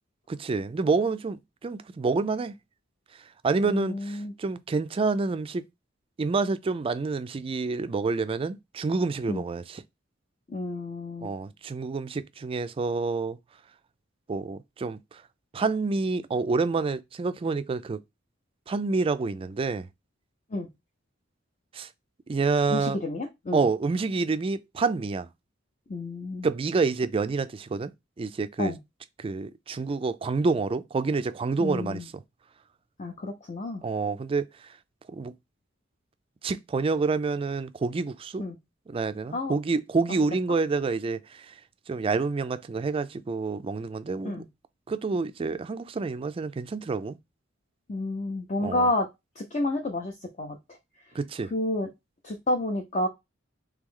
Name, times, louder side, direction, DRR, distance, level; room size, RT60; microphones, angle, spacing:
voice 1, 0.3-2.5 3.4-5.6 6.2-9.8 11.2-13.4 14.3-15.2 15.5-18.0 18.7-19.9 21.7-21.9 22.3-23.0 23.5-25.3 26.4-27.9 28.2-28.7 29.2-32.2 33.8-34.5 35.1-35.3 36.4-38.4 38.9-41.5 41.9-44.4 44.9-47.2 48.6-48.9 51.1-51.5, right 4 dB, 30° right, 0.3 m, -28 dB
voice 2, 3.6-4.3 9.3-9.4 10.5-11.3 20.5-20.7 22.7-23.7 25.9-26.5 28.6-28.8 31.6-32.1 33.0-33.8 38.4-38.6 39.3-39.5 44.2-44.4 47.9-49.1 49.4-50.6 51.5-51.9 52.2-53.1, left 2 dB, 40° left, 0.6 m, -30 dB
3.4 x 3.0 x 3.7 m
head